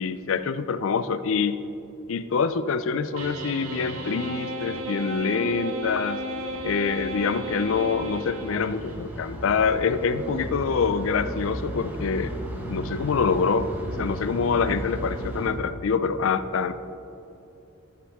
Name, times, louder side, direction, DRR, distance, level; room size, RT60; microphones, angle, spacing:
voice 1, 0.0-1.6 2.1-6.2 6.6-12.3 12.7-13.7 14.0-16.7, left 5 dB, 70° left, 13 dB, 0.4 m, -25 dB
sound 1, 3.2-9.0, right 1 dB, 90° right, 0.9 m, -34 dB
sound 2, 5.2-15.5, right 1 dB, 10° right, 1.2 m, -36 dB
14.5 x 7.3 x 3.6 m, 2.8 s
head